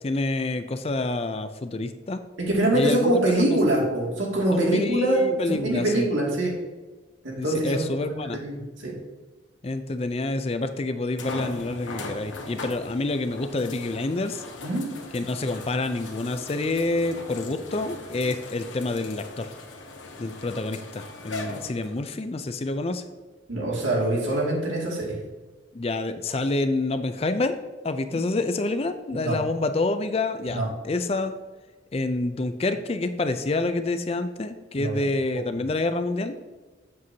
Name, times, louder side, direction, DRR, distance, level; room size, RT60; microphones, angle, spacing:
voice 1, 0.0-2.2 2.7-3.6 4.5-6.1 7.4-8.4 9.6-14.4 15.1-19.5 20.2-23.0 25.7-27.6 27.8-31.3 31.9-36.3, left 2 dB, 30° left, 9 dB, 0.4 m, -27 dB
voice 2, 2.5-6.5 7.2-8.9 14.6-14.9 23.5-25.2 28.1-28.2 29.1-29.3 30.5-30.7 34.8-35.0 35.3-35.6, right 1 dB, 85° right, -3 dB, 2.5 m, -24 dB
sound 1, 10.1-10.2 11.2-22.2 22.9-23.0 26.5-26.6, left 2 dB, 75° left, 1.2 m, -39 dB
7.7 x 7.5 x 2.8 m, 1.3 s
head